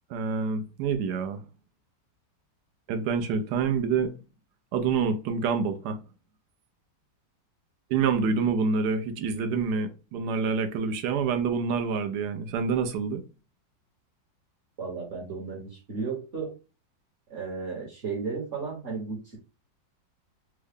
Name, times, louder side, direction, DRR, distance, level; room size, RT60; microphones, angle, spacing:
voice 1, 0.1-1.4 2.9-4.1 4.7-6.0 7.9-13.2, right 5 dB, 70° right, 1.1 m, -27 dB
voice 2, 14.8-16.5 17.3-19.4, right 4 dB, 45° right, 1.2 m, -34 dB
3.6 x 2.1 x 3.4 m
omnidirectional pair, 2.0 m